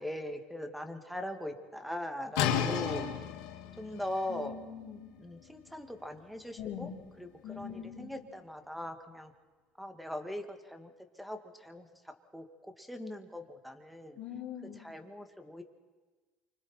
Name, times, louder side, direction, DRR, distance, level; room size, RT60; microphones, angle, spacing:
voice 1, 0.0-3.1 3.8-4.5 5.2-6.9 7.2-7.3 7.5-9.3 9.8-14.2 14.8-15.6, left 1 dB, ahead, 6 dB, 2.3 m, -40 dB
sound 1, 2.3-8.0, left 8 dB, 90° left, 2.3 m, -36 dB
voice 2, 4.3-5.0 6.6-7.0 7.4-8.1 14.2-14.8, left 8 dB, 65° left, -7 dB, 4.5 m, -42 dB
28.5 x 25.0 x 4.5 m, 1.3 s
supercardioid pair, 100°, 3 cm